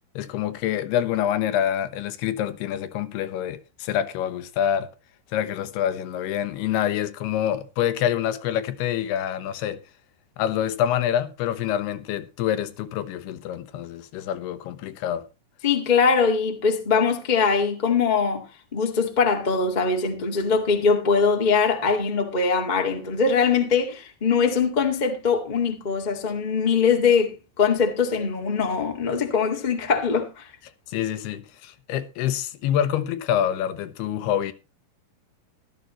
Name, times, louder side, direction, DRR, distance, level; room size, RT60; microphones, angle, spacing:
voice 1, 0.2-4.9 5.3-9.8 10.4-15.2 30.9-34.5, left 10 dB, 90° left, 3.0 m, -26 dB
voice 2, 15.6-18.4 18.7-30.5, left 5 dB, 35° left, 0.7 m, -22 dB
15.0 x 12.5 x 3.0 m
omnidirectional pair, 4.5 m